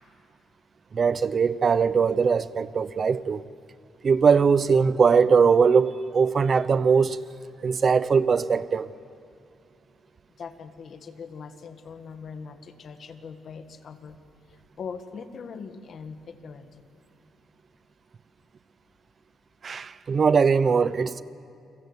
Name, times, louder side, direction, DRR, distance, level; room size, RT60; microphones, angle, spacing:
voice 1, 0.9-3.4 4.0-7.2 7.6-8.9 19.6-21.2, right 5 dB, 30° right, 0.7 m, -21 dB
voice 2, 10.4-14.2 14.5-16.8, left 5 dB, 40° left, 1.7 m, -41 dB
30.0 x 23.5 x 8.2 m
cardioid pair, 170°, 0 cm